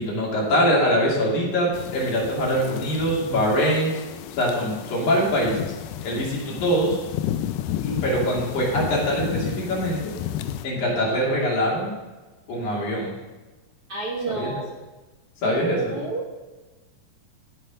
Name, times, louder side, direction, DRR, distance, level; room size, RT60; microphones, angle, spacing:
voice 1, 0.0-3.9 4.3-5.7 6.0-7.0 7.8-10.1 10.6-11.9 12.5-13.1 14.3-14.5 15.4-15.9, equal, 60° left, -4 dB, 4.0 m, -23 dB
sound 1, 1.7-10.7, left 11 dB, 80° left, 1.9 m, -32 dB
voice 2, 13.9-14.6 15.4-16.4, right 3 dB, 60° right, -2 dB, 1.6 m, -31 dB
14.5 x 5.7 x 5.3 m, 1.2 s
omnidirectional pair, 4.0 m